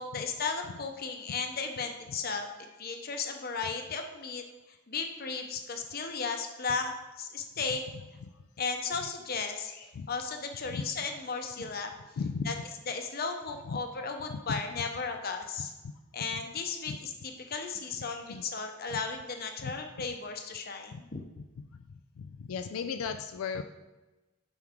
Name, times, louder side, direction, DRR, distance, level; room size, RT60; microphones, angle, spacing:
voice 1, 0.0-2.5 2.8-4.4 4.9-7.8 8.6-11.9 12.5-12.6 12.9-15.7 16.1-17.1 17.5-21.2, left 4 dB, 45° left, 5 dB, 0.7 m, -35 dB
voice 2, 12.2-12.6 13.6-13.8 14.3-14.6 15.8-15.9 16.9-17.0 18.3-18.5 19.6-19.7 20.9-21.9 22.2-23.6, left 5 dB, 85° left, 8 dB, 0.4 m, -37 dB
9.4 x 4.5 x 3.6 m, 1.1 s
head